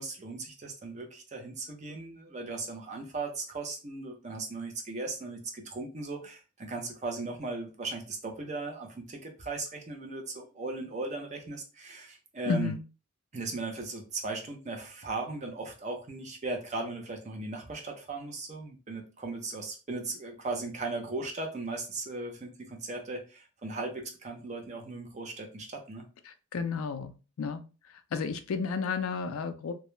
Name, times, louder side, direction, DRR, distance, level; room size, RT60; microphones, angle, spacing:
voice 1, 0.0-12.7 13.3-26.1, right 3 dB, 35° right, 3 dB, 0.5 m, -37 dB
voice 2, 12.5-12.8 26.3-27.6 27.9-29.7, left 5 dB, 85° left, 9 dB, 0.4 m, -32 dB
2.2 x 2.0 x 3.0 m, 0.33 s
head